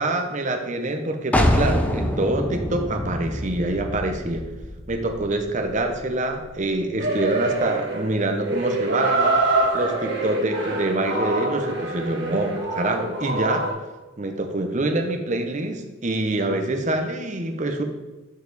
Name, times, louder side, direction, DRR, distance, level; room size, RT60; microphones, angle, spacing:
voice 1, 0.0-4.4 4.9-9.4 9.7-13.6 14.2-17.8, right 2 dB, 35° right, 5 dB, 0.7 m, -25 dB
sound 1, 1.3-6.9, equal, 5° left, 0.4 m, -26 dB
sound 2, 7.0-13.7, right 2 dB, 60° right, 1.3 m, -25 dB
6.9 x 4.7 x 4.0 m, 1.1 s
head